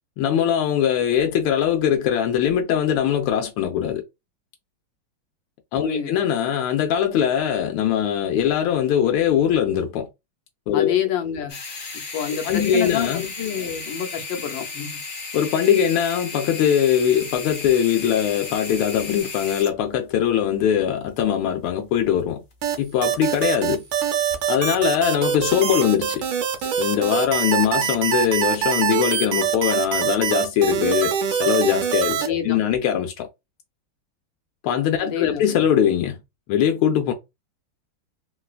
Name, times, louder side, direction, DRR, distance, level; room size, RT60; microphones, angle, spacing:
voice 1, 0.2-4.0 5.7-10.1 10.7-10.9 12.4-13.2 15.3-22.4 22.8-23.8 24.5-26.2 26.8-33.3 34.6-36.2 36.5-37.1, left 9 dB, 90° left, 1.4 m, -21 dB
voice 2, 10.7-11.6 12.1-15.0 32.2-32.6 35.0-35.6, left 9 dB, 70° left, 1.4 m, -27 dB
sound 1, 11.5-23.8 24.1-24.4 25.1-25.2, left 4 dB, 40° left, 0.9 m, -36 dB
sound 2, 22.6-32.3, right 9 dB, 85° right, 1.5 m, -24 dB
3.8 x 2.2 x 2.3 m
omnidirectional pair, 2.2 m